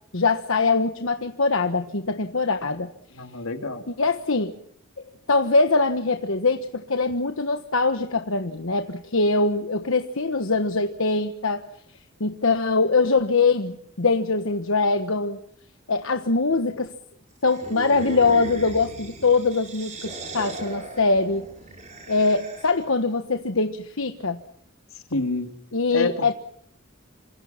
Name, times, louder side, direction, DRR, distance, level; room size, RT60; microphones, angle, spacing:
voice 1, 0.1-2.9 4.0-4.5 5.3-11.6 12.2-15.4 15.9-16.9 17.4-21.5 22.1-24.4 25.7-26.3, left 3 dB, 70° left, 8 dB, 1.3 m, -23 dB
voice 2, 3.1-3.9 25.1-25.6 25.9-26.3, left 2 dB, 85° left, 6 dB, 2.8 m, -28 dB
sound 1, 17.5-22.9, right 2 dB, 35° right, 5.9 m, -38 dB
28.0 x 25.0 x 5.8 m, 0.67 s
head